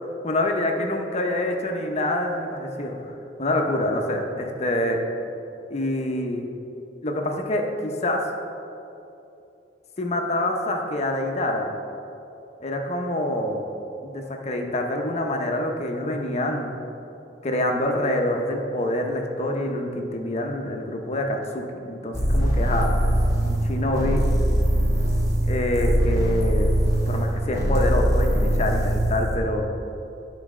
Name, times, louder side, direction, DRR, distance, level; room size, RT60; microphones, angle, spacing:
voice 1, 0.2-2.9 3.4-5.0 5.7-6.5 7.0-8.2 10.0-11.7 12.6-13.6 14.0-16.8 17.4-23.0 23.4-24.3 25.4-26.7 27.1-29.7, left 1 dB, 40° left, 2 dB, 0.7 m, -26 dB
sound 1, 22.1-29.4, right 1 dB, 20° right, 1.2 m, -22 dB
12.0 x 4.1 x 3.6 m, 2.8 s
head